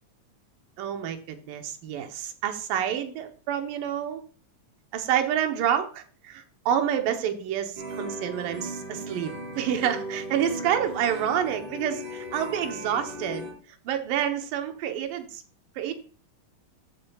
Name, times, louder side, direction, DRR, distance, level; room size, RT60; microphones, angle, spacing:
voice 1, 0.8-4.2 4.9-7.7 8.0-13.5 13.9-15.4 15.8-15.9, right 9 dB, 90° right, 6 dB, 2.7 m, -28 dB
sound 1, 7.8-13.5, equal, 65° right, 5.9 m, -37 dB
14.0 x 6.9 x 2.3 m, 0.40 s
omnidirectional pair, 3.8 m